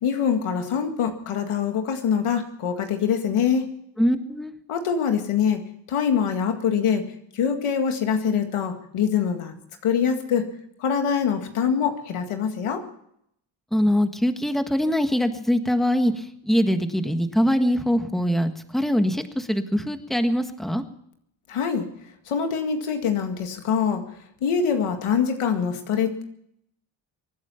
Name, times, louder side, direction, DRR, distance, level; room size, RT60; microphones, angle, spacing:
voice 1, 0.0-3.7 4.7-5.6 5.9-7.0 7.3-9.5 9.8-10.5 10.8-12.8 21.5-21.8 22.3-24.0 24.4-26.2, left 7 dB, 90° left, 5 dB, 2.1 m, -24 dB
voice 2, 4.0-4.5 13.7-20.8, equal, ahead, 8 dB, 1.5 m, -23 dB
24.0 x 9.6 x 5.7 m, 0.72 s
cardioid pair, 70°, 49 cm